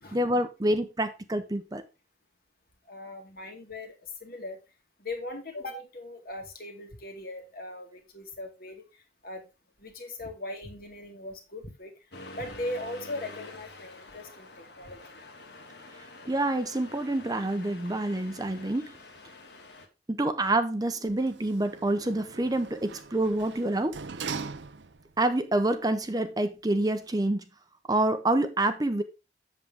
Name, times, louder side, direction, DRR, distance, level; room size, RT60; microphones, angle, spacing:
voice 1, 0.1-1.8 16.3-18.9 20.1-24.0 25.2-27.4 27.9-29.0, right 1 dB, 20° right, 0.7 m, -27 dB
voice 2, 2.9-4.6 5.0-9.4 9.8-11.9 12.3-15.0, left 2 dB, 55° left, 2.1 m, -39 dB
Accelerating revving vroom, 12.1-19.9, left 2 dB, 70° left, 1.7 m, -47 dB
Sliding door, 21.1-25.2 25.6-25.7, right 5 dB, 90° right, 0.7 m, -41 dB
7.9 x 7.3 x 3.5 m
head